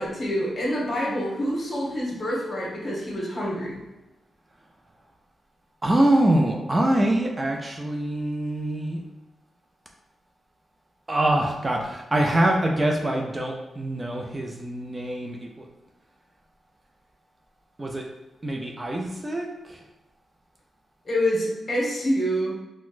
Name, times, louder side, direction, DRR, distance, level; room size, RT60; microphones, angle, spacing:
voice 1, 0.0-3.8 21.0-22.5, equal, 40° left, -3 dB, 1.1 m, -26 dB
voice 2, 5.8-9.0 11.1-15.7 17.8-18.0 18.4-19.8, right 1 dB, 25° right, 1 dB, 0.4 m, -24 dB
4.0 x 2.0 x 2.4 m, 1.0 s
cardioid pair, 100°, 0 cm